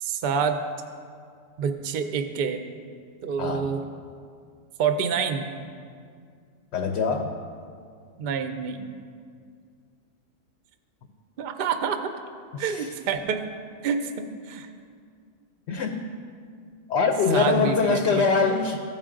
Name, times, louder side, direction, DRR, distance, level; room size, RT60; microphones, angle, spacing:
voice 1, 0.0-0.6 1.6-2.6 3.2-3.8 4.8-5.5 8.2-8.9 11.4-12.0 12.6-13.4 13.8-14.7 17.3-18.2, right 6 dB, 55° right, 7 dB, 0.6 m, -27 dB
voice 2, 6.7-7.4 12.5-12.9 15.7-16.1 16.9-18.8, left 4 dB, 65° left, 4 dB, 0.8 m, -23 dB
14.5 x 4.9 x 3.7 m, 2.2 s
omnidirectional pair, 1.4 m